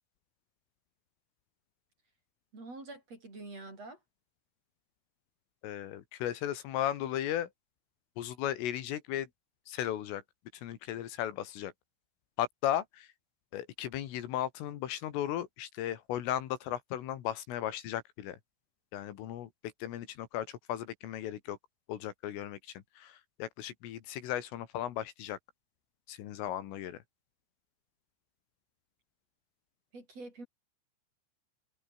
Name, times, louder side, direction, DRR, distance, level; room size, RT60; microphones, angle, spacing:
voice 1, 2.5-4.0 29.9-30.5, right 2 dB, 30° right, 8.5 m, -46 dB
voice 2, 5.6-7.5 8.2-9.3 9.7-10.2 10.5-11.7 12.4-13.1 13.5-18.4 18.9-19.5 19.8-21.6 21.9-25.4 26.1-27.0, left 11 dB, 75° left, 4.5 m, -36 dB
omnidirectional pair, 5.9 m